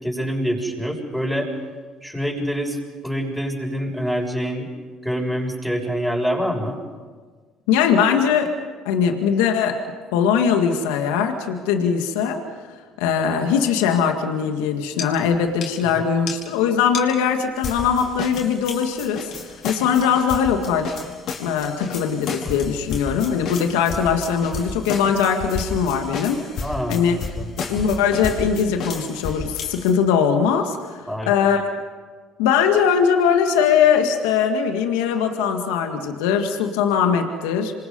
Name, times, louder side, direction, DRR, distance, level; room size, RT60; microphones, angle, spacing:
voice 1, 0.0-1.5 2.0-2.8 3.0-4.7 5.0-6.8 15.9-16.0 26.6-27.5 31.1-31.3, equal, ahead, -1 dB, 6.5 m, -26 dB
voice 2, 7.7-8.6 8.9-9.8 10.1-12.4 13.0-19.3 19.6-20.9 21.4-26.5 26.9-27.2 27.6-31.6 32.4-37.7, left 7 dB, 90° left, 5 dB, 2.0 m, -20 dB
sound 1, 15.0-15.1 15.3-15.4 15.6-15.7 16.3-16.4 16.9-17.0 17.6-29.9, left 4 dB, 65° left, 5.1 m, -32 dB
27.5 x 24.5 x 5.5 m, 1.5 s
supercardioid pair, 80°, 0 cm